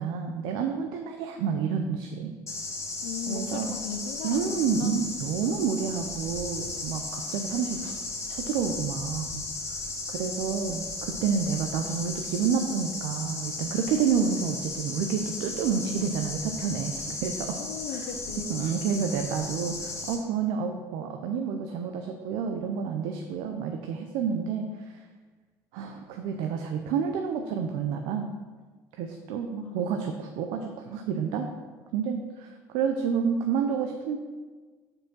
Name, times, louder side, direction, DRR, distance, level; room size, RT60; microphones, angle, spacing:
voice 1, 0.0-2.3 3.3-3.8 4.2-7.9 8.3-9.8 10.1-17.6 17.9-18.1 18.5-25.0 25.7-28.3 29.0-31.5 31.9-34.2, right 6 dB, 85° right, 4 dB, 0.5 m, -29 dB
sound 1, 2.5-20.1, left 3 dB, 35° left, 1.6 m, -36 dB
voice 2, 3.0-5.0 17.6-19.0 29.6-29.9, left 7 dB, 90° left, 6 dB, 0.5 m, -37 dB
4.9 x 4.7 x 6.2 m, 1.4 s
supercardioid pair, 95°, 8 cm